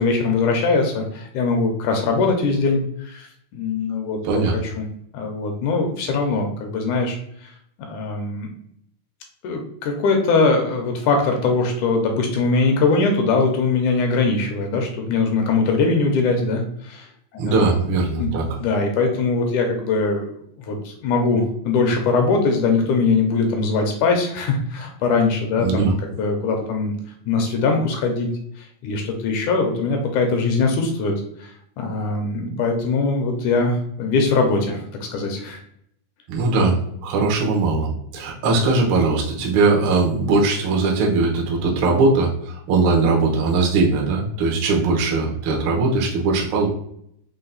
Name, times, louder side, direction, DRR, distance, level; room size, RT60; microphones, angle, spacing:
voice 1, 0.0-4.2 4.5-4.9 5.1-7.2 7.4-7.5 7.9-8.5 9.4-17.1 17.3-17.8 18.2-20.3 20.6-26.9 27.3-28.3 28.6-34.8 35.1-35.6, left 3 dB, 75° left, 3 dB, 2.1 m, -21 dB
voice 2, 17.4-18.6 25.6-25.9 36.3-46.7, right 3 dB, 90° right, -1 dB, 1.1 m, -20 dB
5.6 x 2.2 x 3.9 m, 0.70 s
omnidirectional pair, 3.8 m